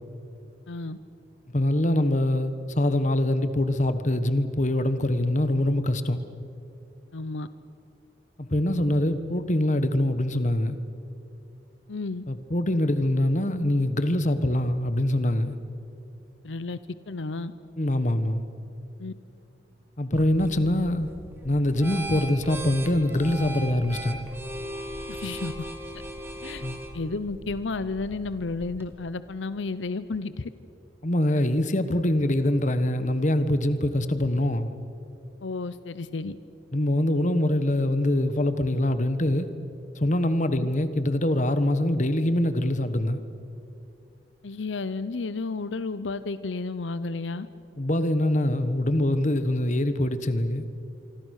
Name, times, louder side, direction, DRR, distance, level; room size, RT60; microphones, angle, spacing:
voice 1, 0.7-1.0 7.1-7.5 11.9-12.2 16.4-16.8 17.1-17.5 19.0-19.1 25.1-25.5 26.4-26.6 26.9-30.5 35.4-36.4 40.6-40.7 44.4-47.5, left 3 dB, 85° left, 14 dB, 0.7 m, -32 dB
voice 2, 1.5-6.2 8.4-10.8 12.3-15.5 17.8-18.4 20.0-21.1 21.4-24.2 26.6-26.8 31.0-34.7 36.7-39.5 40.0-43.2 47.8-50.6, left 1 dB, 40° left, 11 dB, 1.3 m, -24 dB
sound 1, 20.1-28.9, right 1 dB, 15° right, 2.0 m, -39 dB
25.5 x 25.0 x 6.5 m, 2.7 s
head